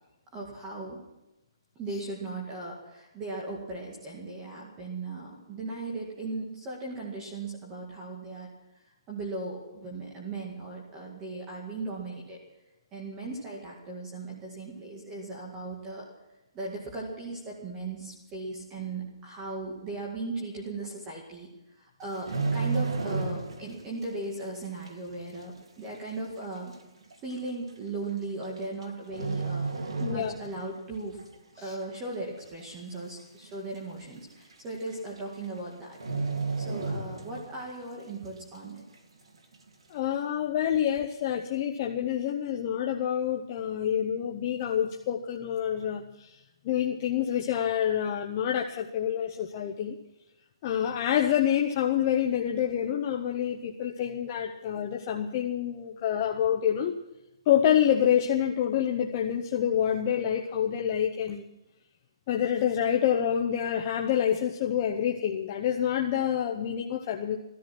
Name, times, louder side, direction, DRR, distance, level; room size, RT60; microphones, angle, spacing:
voice 1, 0.3-1.0 1.8-8.5 9.1-12.4 12.9-16.1 16.5-21.5 21.8-26.7 27.2-31.2 31.6-36.0 36.6-38.8, right 2 dB, 15° right, -2 dB, 2.1 m, -37 dB
sound 1, 22.0-23.8 24.0-24.3 24.9-25.0 25.8-25.9 26.2-26.3 27.1-27.3 28.4-28.8 29.1-30.7 31.0-31.2 31.7-32.3 32.6-32.7 32.9-33.0 33.4-33.5 34.5-34.6 34.9-35.2 35.4-35.6 35.9-37.6 38.0-38.1, right 4 dB, 90° right, 2.4 m, -31 dB
voice 2, 30.0-30.3 31.6-31.8 39.9-46.3 46.6-50.0 50.6-56.9 57.5-61.5 62.3-67.4, left 9 dB, 25° left, 2 dB, 0.7 m, -27 dB
17.0 x 13.5 x 6.0 m, 0.95 s
hypercardioid pair, 170°, 3 cm